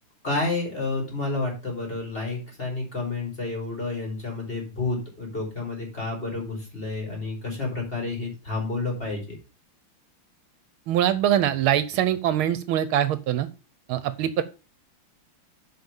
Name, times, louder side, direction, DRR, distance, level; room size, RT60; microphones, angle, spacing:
voice 1, 0.2-9.2, left 3 dB, 25° left, -1 dB, 4.4 m, -30 dB
voice 2, 10.9-13.5 13.9-14.4, right 11 dB, 75° right, 14 dB, 1.5 m, -23 dB
7.8 x 5.2 x 7.0 m, 0.32 s
omnidirectional pair, 2.4 m